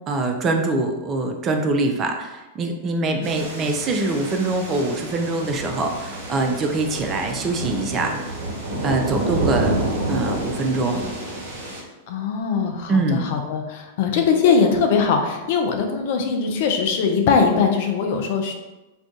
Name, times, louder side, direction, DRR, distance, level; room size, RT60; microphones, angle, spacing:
voice 1, 0.1-8.1 8.8-9.7 10.1-11.0 12.9-13.2, right 2 dB, 30° right, 4 dB, 0.4 m, -23 dB
sound 1, 3.2-11.8, right 1 dB, 55° right, 1.1 m, -28 dB
voice 2, 12.1-18.5, left 5 dB, 55° left, 3 dB, 0.4 m, -21 dB
2.5 x 2.3 x 3.7 m, 1.1 s
figure-of-eight pair, 100°, 0 cm